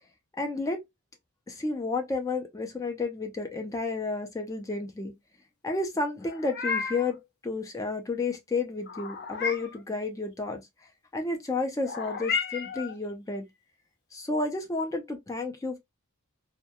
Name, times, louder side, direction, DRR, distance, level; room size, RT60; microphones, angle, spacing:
voice 1, 0.4-0.8 1.5-5.1 5.6-10.6 11.1-13.4 14.1-15.8, left 3 dB, 15° left, 0.4 m, -31 dB
Meow, 6.2-7.1 8.9-9.8 11.8-13.0, left 5 dB, 50° left, 0.6 m, -32 dB
2.2 x 2.1 x 2.8 m
head